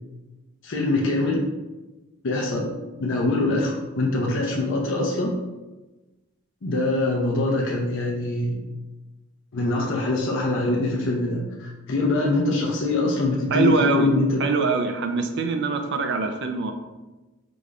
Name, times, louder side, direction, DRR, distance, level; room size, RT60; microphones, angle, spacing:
voice 1, 0.6-1.4 2.2-2.7 3.0-5.3 6.6-8.6 9.5-14.4, left 2 dB, 60° left, -2 dB, 0.6 m, -23 dB
voice 2, 13.5-14.1 14.4-16.7, right 4 dB, 55° right, 5 dB, 0.5 m, -23 dB
5.1 x 2.4 x 3.2 m, 1.1 s
head